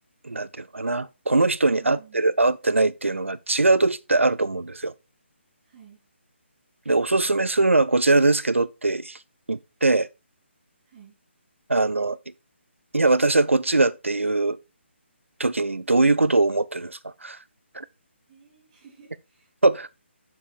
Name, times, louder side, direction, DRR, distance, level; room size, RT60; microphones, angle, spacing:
voice 1, 0.2-4.9 6.9-9.2 9.5-10.1 11.7-12.2 12.9-14.6 15.4-17.4 17.7-17.9 19.6-19.9, right 2 dB, 80° right, 0.5 m, -21 dB
voice 2, 1.8-2.4 5.6-6.0 10.9-11.2 18.3-19.5, right 7 dB, 30° right, 3.7 m, -52 dB
7.2 x 7.2 x 4.4 m
figure-of-eight pair, 145°, 7 cm